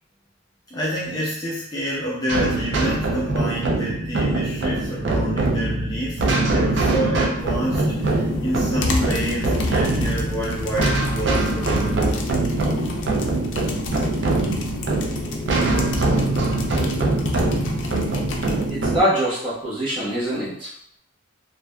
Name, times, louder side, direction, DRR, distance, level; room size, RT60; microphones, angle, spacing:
voice 1, 0.7-12.0, equal, 20° left, -7 dB, 0.5 m, -28 dB
sound 1, 2.3-19.0, right 2 dB, 65° right, 0.4 m, -23 dB
sound 2, 7.4-18.7, left 2 dB, 70° left, 0.4 m, -31 dB
voice 2, 18.7-20.7, equal, 25° right, -10 dB, 1.1 m, -23 dB
2.6 x 2.2 x 2.2 m, 0.67 s
head